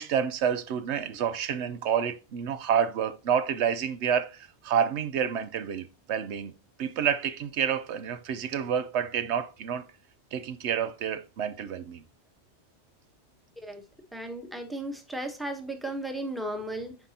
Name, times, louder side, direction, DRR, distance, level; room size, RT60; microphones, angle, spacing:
voice 1, 0.0-6.5 6.8-9.8 10.3-12.0, right 8 dB, 90° right, 0.9 m, -29 dB
voice 2, 14.1-17.0, right 1 dB, ahead, 0.8 m, -35 dB
9.3 x 3.8 x 2.8 m
omnidirectional pair, 1.1 m